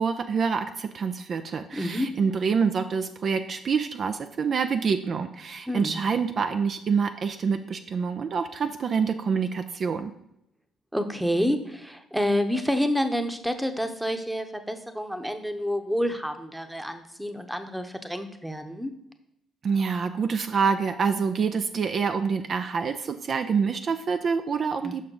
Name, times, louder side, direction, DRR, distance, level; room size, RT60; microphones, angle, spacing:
voice 1, 0.0-10.1 19.6-25.1, right 5 dB, 50° right, 8 dB, 0.4 m, -26 dB
voice 2, 1.7-2.1 5.7-6.0 10.9-18.9 24.8-24.9, equal, 5° right, 7 dB, 0.9 m, -28 dB
6.4 x 5.7 x 3.8 m, 0.80 s
hypercardioid pair, 55°, 0 cm